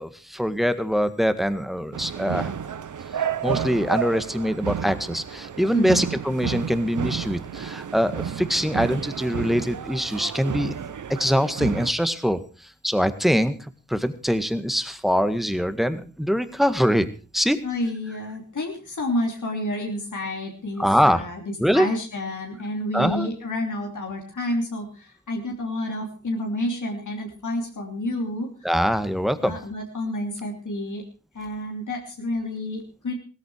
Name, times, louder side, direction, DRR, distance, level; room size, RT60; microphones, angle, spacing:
voice 1, 0.0-2.5 3.2-10.7 11.2-13.6 13.9-17.1 17.3-17.6 20.8-21.2 21.6-21.9 22.9-23.3 28.6-29.6, equal, ahead, 11 dB, 1.8 m, -23 dB
sound 1, 1.9-11.9, right 8 dB, 80° right, 0.8 m, -31 dB
voice 2, 5.7-6.1 17.6-28.7 29.4-31.0 31.3-33.1, left 1 dB, 80° left, 1 dB, 3.1 m, -29 dB
16.5 x 14.0 x 4.7 m, 0.36 s
cardioid pair, 50°, 30 cm